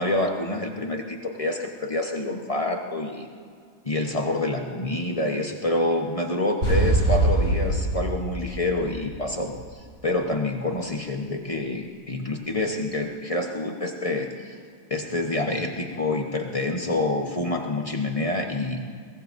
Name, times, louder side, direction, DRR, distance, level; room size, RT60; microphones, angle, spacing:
voice 1, 0.0-3.3 3.8-9.5 10.0-14.6 14.9-18.8, left 2 dB, 35° left, 2 dB, 0.5 m, -27 dB
sound 1, 6.6-9.6, right 2 dB, 35° right, 5.7 m, -23 dB
22.5 x 19.0 x 2.6 m, 2.1 s
omnidirectional pair, 2.2 m